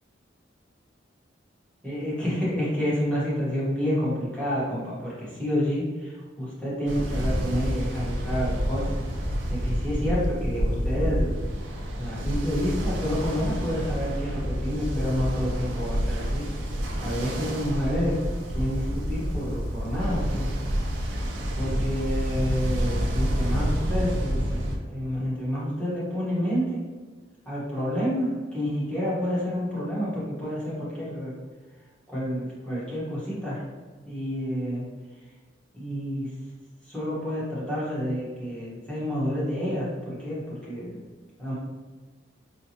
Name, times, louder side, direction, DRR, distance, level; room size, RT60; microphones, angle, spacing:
voice 1, 1.8-9.0 9.5-11.4 12.0-16.5 17.0-18.2 18.5-20.5 21.0-21.2 21.6-24.6 24.9-26.8 27.5-31.4 32.1-33.6 34.1-34.9 35.7-36.3 36.9-41.0 41.4-41.5, equal, 5° left, -9 dB, 1.1 m, -29 dB
Ocean, 6.9-24.8, equal, 80° right, 0.5 m, -28 dB
4.4 x 2.2 x 2.8 m, 1.4 s
head